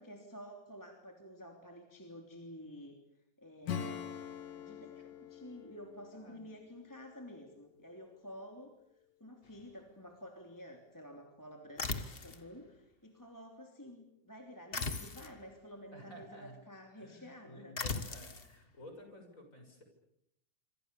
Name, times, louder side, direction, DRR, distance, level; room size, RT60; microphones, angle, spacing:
voice 1, 0.0-3.0 3.4-4.1 4.6-8.7 9.2-17.7, equal, 5° left, 2 dB, 2.8 m, -51 dB
Acoustic guitar / Strum, 3.6-7.9, left 8 dB, 80° left, 3.4 m, -45 dB
voice 2, 6.1-6.4 15.9-16.6 17.0-19.8, equal, 20° left, 4 dB, 6.7 m, -53 dB
sound 1, 11.8-12.4 14.7-15.4 17.8-18.5, left 4 dB, 50° left, 0.6 m, -38 dB
26.5 x 26.5 x 7.0 m, 0.78 s
omnidirectional pair, 3.8 m